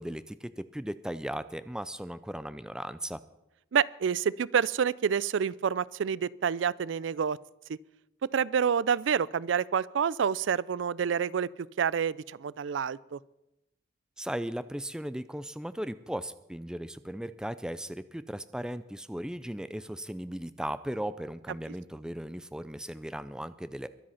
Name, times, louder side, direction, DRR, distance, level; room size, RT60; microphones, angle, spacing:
voice 1, 0.0-3.2 14.2-23.9, right 1 dB, 5° right, 14 dB, 0.5 m, -37 dB
voice 2, 3.7-7.4 8.3-11.5 11.8-13.2, right 7 dB, 85° right, 21 dB, 0.4 m, -28 dB
22.5 x 7.8 x 5.7 m, 0.89 s
head